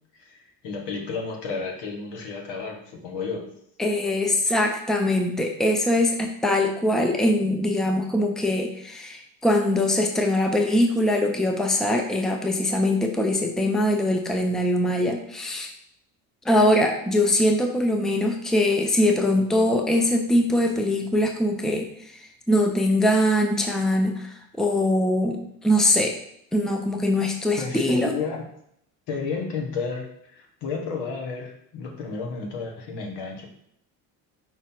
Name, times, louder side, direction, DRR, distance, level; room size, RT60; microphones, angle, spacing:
voice 1, 0.1-3.5 27.6-28.5 29.1-33.5, left 4 dB, 65° left, 1 dB, 1.7 m, -32 dB
voice 2, 3.8-15.7 16.4-21.9 22.5-24.3 24.6-26.1 26.5-28.1, left 1 dB, ahead, 3 dB, 0.8 m, -22 dB
5.7 x 4.1 x 4.5 m, 0.72 s
hypercardioid pair, 65°, 46 cm